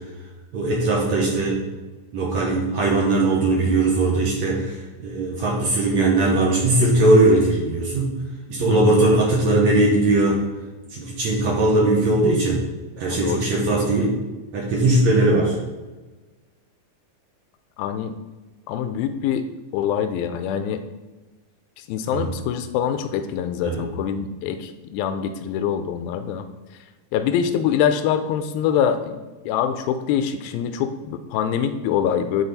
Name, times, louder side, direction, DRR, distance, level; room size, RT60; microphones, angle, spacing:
voice 1, 0.5-1.6 2.1-8.2 8.5-10.4 10.9-12.6 13.0-14.1 14.5-15.6 22.1-22.3 23.6-23.8, right 2 dB, 65° right, -3 dB, 1.9 m, -19 dB
voice 2, 8.7-9.1 13.1-13.7 17.8-18.1 18.7-19.5 19.7-20.8 21.8-26.5 27.1-29.2 29.5-32.4, left 8 dB, 85° left, 10 dB, 2.4 m, -24 dB
10.5 x 4.2 x 4.0 m, 1.2 s
omnidirectional pair, 4.2 m